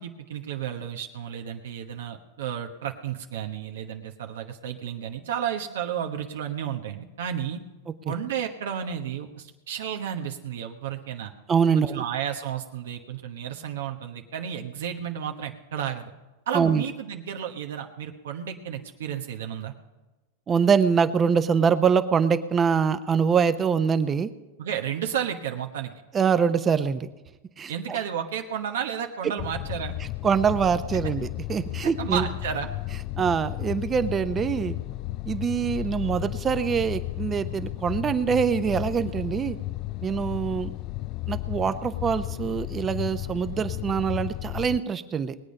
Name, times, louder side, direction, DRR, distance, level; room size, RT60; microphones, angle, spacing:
voice 1, 0.0-7.6 8.0-11.3 11.7-16.1 16.5-19.7 24.6-25.9 27.7-30.0 32.0-32.7, right 9 dB, 80° right, 4 dB, 1.2 m, -32 dB
voice 2, 11.5-12.0 16.5-16.8 20.5-24.3 26.1-27.1 27.6-28.0 30.2-32.3 33.2-34.8 35.3-39.6 40.0-40.7 41.3-45.4, right 6 dB, 25° right, 11 dB, 0.8 m, -24 dB
sound 1, 29.4-44.8, left 17 dB, 45° left, 0.3 m, -33 dB
20.0 x 8.6 x 5.4 m, 1.1 s
hypercardioid pair, 120°, 0 cm